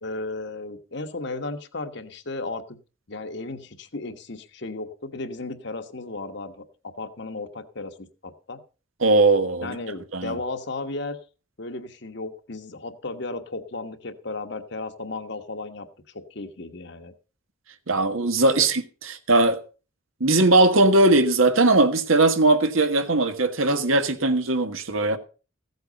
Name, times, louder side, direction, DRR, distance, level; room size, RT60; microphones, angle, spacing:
voice 1, 0.0-2.8 3.1-6.6 7.0-8.6 9.6-11.2 11.6-15.9 16.1-17.1 18.6-18.7, left 2 dB, 55° left, 1.3 m, -34 dB
voice 2, 9.0-9.8 10.1-10.4 17.9-18.8 19.3-19.6 20.2-25.2, right 2 dB, 85° right, 1.5 m, -19 dB
15.5 x 8.0 x 5.3 m
head